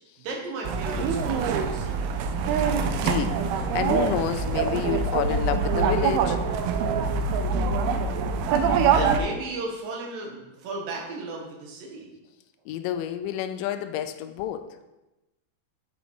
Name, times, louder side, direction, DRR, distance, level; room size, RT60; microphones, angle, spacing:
voice 1, 0.2-2.1 8.9-12.1, right 2 dB, 70° right, 0 dB, 2.9 m, -35 dB
sound 1, 0.6-9.2, right 5 dB, 85° right, 2.6 m, -24 dB
voice 2, 2.9-3.4 3.7-6.4 12.7-14.7, left 10 dB, 85° left, 8 dB, 1.9 m, -29 dB
7.9 x 5.0 x 5.2 m, 0.98 s
omnidirectional pair, 4.4 m